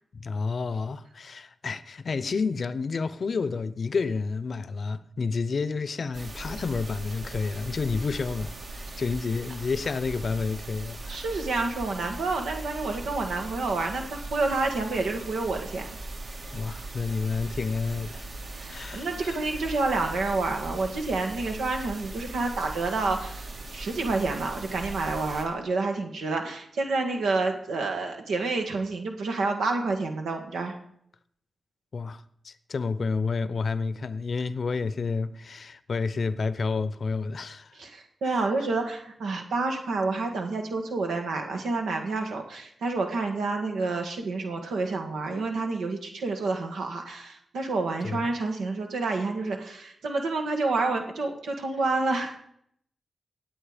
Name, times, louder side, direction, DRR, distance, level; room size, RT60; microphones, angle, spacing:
voice 1, 0.1-11.3 16.5-18.3 18.7-19.4 31.9-37.7 38.2-38.5 48.0-48.2, left 4 dB, 60° left, 0.7 m, -30 dB
sound 1, 6.1-25.4, right 2 dB, 65° right, 2.9 m, -39 dB
voice 2, 11.1-15.9 18.5-30.7 37.7-52.4, right 3 dB, 90° right, 1.7 m, -29 dB
17.5 x 7.9 x 5.1 m
cardioid pair, 55°, 0 cm